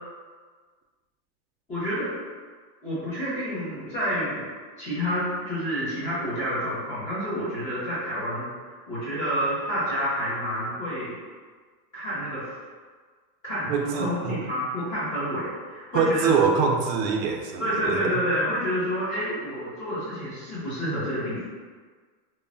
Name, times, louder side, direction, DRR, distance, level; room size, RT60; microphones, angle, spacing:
voice 1, 1.7-2.1 2.8-4.5 4.8-11.2 11.9-12.5 13.4-16.3 17.6-21.4, equal, 15° left, -11 dB, 0.7 m, -29 dB
voice 2, 13.6-14.4 15.9-18.2, right 5 dB, 80° right, 2 dB, 0.6 m, -24 dB
3.0 x 2.0 x 2.5 m, 1.5 s
supercardioid pair, 160°, 48 cm